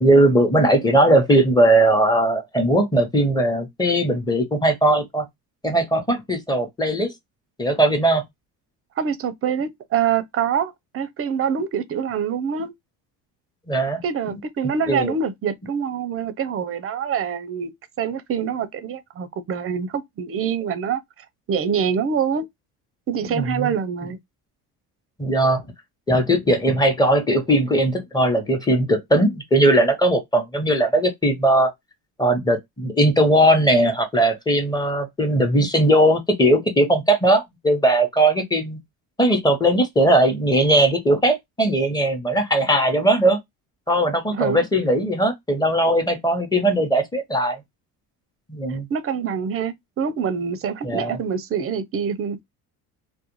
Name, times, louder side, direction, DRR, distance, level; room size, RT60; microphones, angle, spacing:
voice 1, 0.0-5.3 5.6-7.1 7.6-8.3 13.7-14.0 14.9-15.1 23.2-23.7 25.2-25.6 26.1-31.7 32.2-38.8 39.2-43.4 43.9-47.6 48.5-48.9 50.8-51.2, right 1 dB, 10° left, 0.9 m, -19 dB
voice 2, 9.0-12.7 14.0-17.7 18.0-22.5 23.1-24.2 44.3-44.6 48.7-52.4, right 7 dB, 35° right, 0.5 m, -25 dB
2.4 x 2.2 x 3.0 m
supercardioid pair, 90°, 41 cm